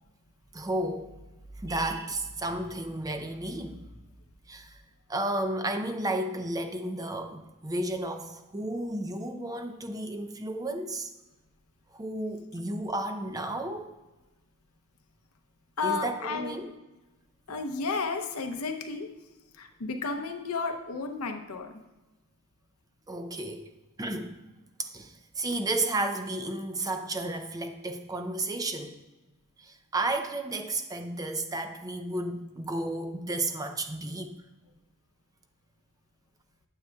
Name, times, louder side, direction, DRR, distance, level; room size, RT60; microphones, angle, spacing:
voice 1, 0.5-1.2 1.6-3.9 4.5-4.8 5.1-11.1 11.9-14.0 15.8-16.7 23.1-23.6 24.0-24.4 24.8-28.9 29.6-34.4, right 2 dB, 15° right, 7 dB, 0.5 m, -32 dB
voice 2, 15.8-16.6 17.5-19.1 19.5-21.7, left 4 dB, 80° left, 5 dB, 0.7 m, -32 dB
9.3 x 7.7 x 2.3 m, 1.1 s
head